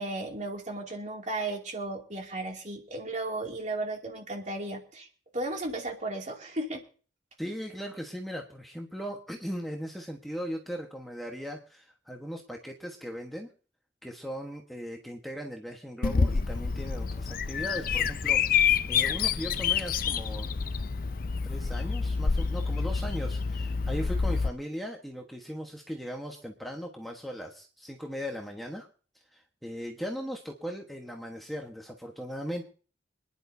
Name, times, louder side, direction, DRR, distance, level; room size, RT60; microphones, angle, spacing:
voice 1, 0.0-5.1 5.3-6.8, right 2 dB, 40° right, 1 dB, 2.6 m, -35 dB
voice 2, 7.4-13.5 14.0-20.5 21.4-28.9 29.3-32.7, equal, ahead, 0 dB, 1.3 m, -38 dB
Bird vocalization bird call bird song, 16.0-24.5, left 6 dB, 50° left, 0.6 m, -28 dB
25.5 x 10.5 x 2.8 m, 0.40 s
head